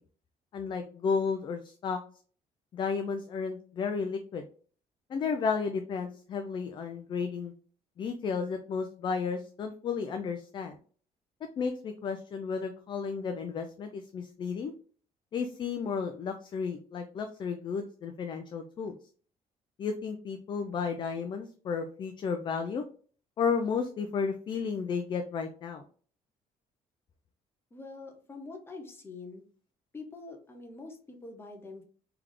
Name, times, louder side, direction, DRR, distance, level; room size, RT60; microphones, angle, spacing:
voice 1, 0.5-2.0 2.7-4.4 5.1-7.5 8.0-10.8 11.6-14.7 15.3-19.0 19.8-22.8 23.4-25.8, left 5 dB, 30° left, 6 dB, 0.4 m, -33 dB
voice 2, 27.7-29.4 29.9-31.8, left 3 dB, 15° left, 2 dB, 0.8 m, -45 dB
3.4 x 3.4 x 3.6 m, 0.44 s
cardioid pair, 165°, 15 cm